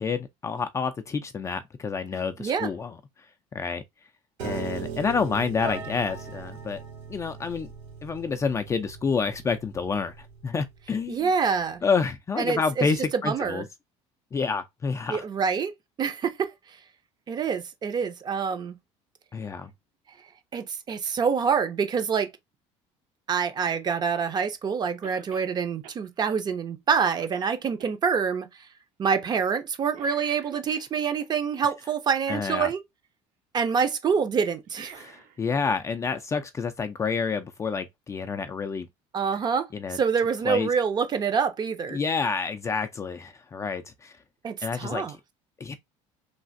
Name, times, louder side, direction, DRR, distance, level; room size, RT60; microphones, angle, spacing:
voice 1, 0.0-2.9 3.5-3.8 4.4-6.8 7.1-7.7 8.0-11.3 11.8-13.6 14.3-15.2 19.3-19.7 32.3-32.7 35.0-38.9 39.7-40.0 40.4-40.7 41.9-44.1 44.6-45.0 45.6-45.7, left 5 dB, 25° left, 0.3 m, -28 dB
voice 2, 2.4-2.7 11.1-11.8 12.4-12.9 13.1-13.6 15.1-15.7 16.0-16.5 17.3-18.8 20.5-22.3 23.3-28.5 29.0-32.8 33.5-35.0 39.1-42.0 44.4-45.2, right 6 dB, 35° right, 0.5 m, -26 dB
Piano, 4.4-10.6, right 5 dB, 90° right, 2.0 m, -39 dB
Cough, 25.0-25.5 25.8-26.0 26.5-26.6 26.9-27.9 29.9-31.3 34.5-35.8 36.2-36.3 37.4-37.5, right 8 dB, 70° right, 0.9 m, -48 dB
3.3 x 2.4 x 2.5 m
cardioid pair, 120°, 13 cm